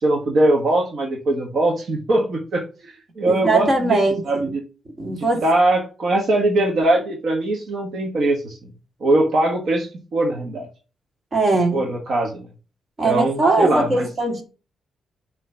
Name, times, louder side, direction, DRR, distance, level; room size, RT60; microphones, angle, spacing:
voice 1, 0.0-4.0 4.2-4.6 5.1-8.6 9.0-10.7 11.7-12.5 13.0-14.1, right 2 dB, 60° right, 1.3 m, -21 dB
voice 2, 3.3-4.5 5.0-5.4 11.3-11.8 13.0-14.4, right 2 dB, 35° right, 1.9 m, -20 dB
6.3 x 3.2 x 5.7 m
cardioid pair, 120°, 0 cm